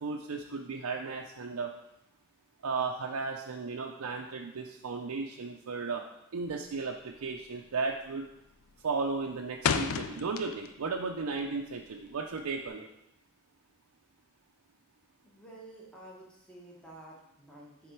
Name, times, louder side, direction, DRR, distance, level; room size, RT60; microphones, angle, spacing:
voice 1, 0.0-1.7 2.6-6.0 6.3-8.3 8.8-12.9, right 4 dB, 80° right, 1 dB, 0.5 m, -35 dB
sound 1, 6.4-6.8 7.1-7.5 7.8-8.2 8.6-10.9 11.2-12.7, left 6 dB, 70° left, 0.4 m, -33 dB
voice 2, 15.2-17.9, right 1 dB, 5° left, -5 dB, 1.1 m, -51 dB
7.6 x 3.7 x 4.5 m, 0.85 s
head